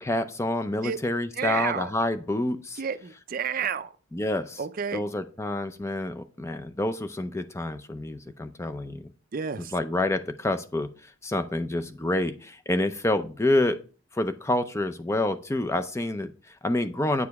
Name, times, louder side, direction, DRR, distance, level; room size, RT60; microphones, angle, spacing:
voice 1, 0.0-2.8 4.1-4.6 4.9-9.1 9.6-13.8 14.1-17.3, left 1 dB, 15° left, 0.5 m, -28 dB
voice 2, 1.4-1.9 2.8-3.9 4.6-5.1 9.3-9.7, right 7 dB, 45° right, 0.4 m, -30 dB
9.2 x 4.9 x 3.5 m
head